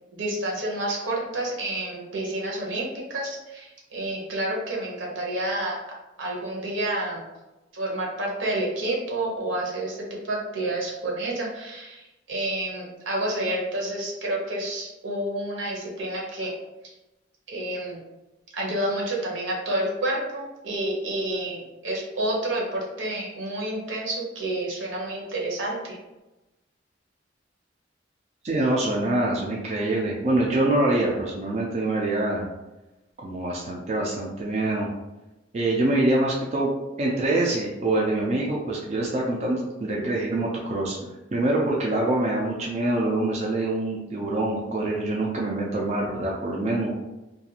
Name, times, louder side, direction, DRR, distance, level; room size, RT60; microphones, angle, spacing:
voice 1, 0.1-5.8 6.2-7.2 7.7-16.5 17.5-18.0 18.5-26.0, right 1 dB, 80° right, -2 dB, 0.8 m, -29 dB
voice 2, 28.4-32.4 33.2-34.9 35.5-36.7 37.0-41.0 41.3-47.0, right 2 dB, 35° right, -3 dB, 0.3 m, -25 dB
2.4 x 2.3 x 2.8 m, 1.0 s
head